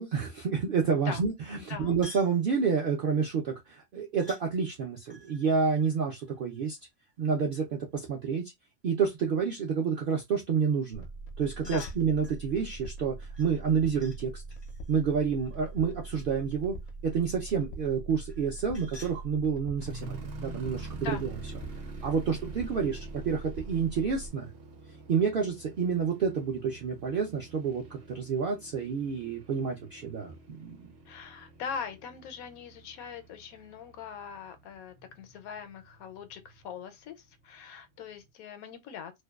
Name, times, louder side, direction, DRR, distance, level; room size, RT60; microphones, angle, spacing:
voice 1, 0.0-6.8 7.2-8.4 8.8-11.0 11.4-14.4 14.9-16.8 17.0-21.2 22.0-24.4 25.1-30.9, right 6 dB, 70° right, 0.5 m, -29 dB
sound 1, 2.0-2.4 4.2-4.4 5.1-6.9 11.4-12.4 13.3-14.2 14.5-16.4 18.3-19.2, left 2 dB, 40° left, 0.4 m, -51 dB
sound 2, 10.9-24.3, right 3 dB, 65° left, 0.7 m, -42 dB
sound 3, 19.8-36.8 37.4-37.5 38.0-38.3, right 3 dB, 55° right, 0.8 m, -48 dB
voice 2, 31.0-39.1, left 7 dB, 85° left, 1.0 m, -41 dB
2.6 x 2.1 x 2.2 m
omnidirectional pair, 1.4 m